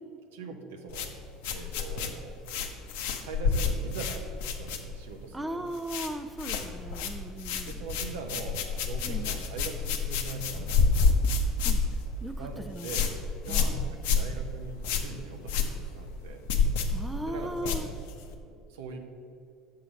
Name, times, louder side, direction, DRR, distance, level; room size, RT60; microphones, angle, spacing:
voice 1, 0.3-1.2 1.5-2.4 3.2-4.3 4.6-5.6 7.7-11.1 12.4-13.1 13.4-15.6 15.9-16.5 17.2-17.8 18.4-19.0, right 4 dB, 80° right, 4 dB, 0.8 m, -41 dB
sound 1, 0.9-5.2 5.5-6.1 6.4-18.3, left 4 dB, 75° left, 0.7 m, -29 dB
voice 2, 5.3-7.9 9.0-9.3 11.6-11.8 12.2-13.0 13.5-13.8 16.9-17.9, right 1 dB, 10° right, 8 dB, 0.5 m, -37 dB
6.8 x 5.8 x 5.0 m, 2.5 s
hypercardioid pair, 70°, 0 cm